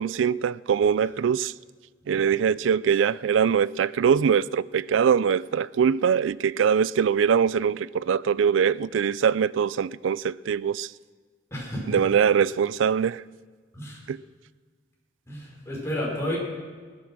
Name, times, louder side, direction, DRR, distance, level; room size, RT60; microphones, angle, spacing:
voice 1, 0.0-1.5 2.1-10.9 11.9-13.2 14.1-14.2, right 7 dB, 85° right, 0.4 m, -22 dB
voice 2, 11.5-12.0 13.7-14.0 15.3-16.4, left 1 dB, 15° left, 4.7 m, -31 dB
19.5 x 9.5 x 6.1 m
head